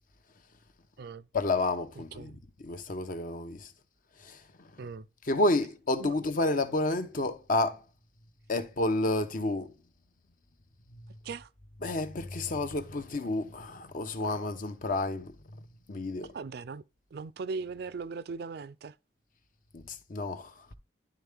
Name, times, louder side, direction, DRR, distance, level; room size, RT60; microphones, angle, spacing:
voice 1, 1.3-3.7 4.2-4.7 5.2-7.8 8.5-9.7 10.9-11.0 11.8-15.4 15.9-16.3 19.7-20.7, left 2 dB, 50° left, 0.8 m, -30 dB
voice 2, 16.3-16.8 17.1-19.0, right 4 dB, 60° right, 0.4 m, -39 dB
11.0 x 3.7 x 3.4 m
head